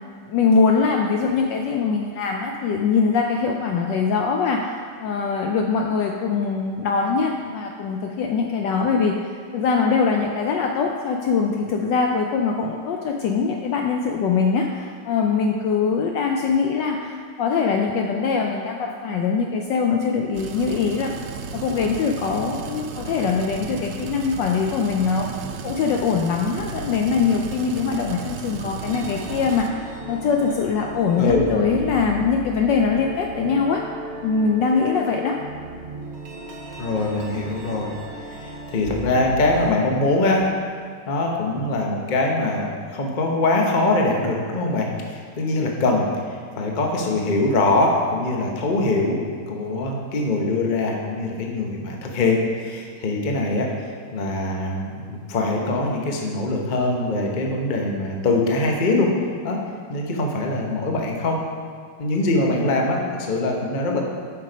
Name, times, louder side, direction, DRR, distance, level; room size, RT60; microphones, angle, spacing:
voice 1, 0.2-21.1 21.5-25.3 25.6-33.8 34.2-35.4 63.9-64.0, left 5 dB, 75° left, 2 dB, 1.0 m, -22 dB
sound 1, 20.3-29.7, right 6 dB, 90° right, 1.6 m, -34 dB
sound 2, 28.8-39.8, right 1 dB, 45° right, 0.9 m, -36 dB
voice 2, 36.8-37.9 38.3-40.5 41.1-49.2 49.5-53.7 54.1-59.1 59.4-59.6 59.9-61.4 62.0-64.1, left 2 dB, 50° left, 0 dB, 0.5 m, -23 dB
7.8 x 6.2 x 5.0 m, 2.1 s
omnidirectional pair, 2.4 m